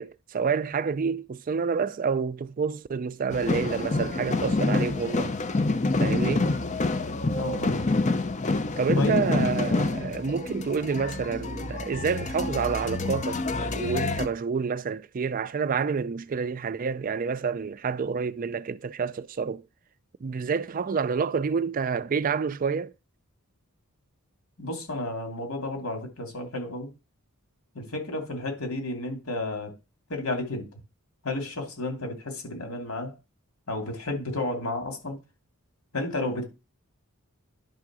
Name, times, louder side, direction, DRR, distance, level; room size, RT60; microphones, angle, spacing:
voice 1, 0.0-5.4 6.0-6.5 8.8-19.6 20.2-22.9, right 5 dB, 40° right, 0.4 m, -28 dB
sound 1, 3.3-14.3, left 3 dB, 35° left, 0.6 m, -27 dB
voice 2, 7.4-7.9 9.0-9.2 24.6-26.9 27.7-29.7 30.1-30.7 31.2-33.1 33.7-35.2 35.9-36.4, left 2 dB, 80° left, 2.9 m, -32 dB
10.5 x 3.8 x 6.1 m
head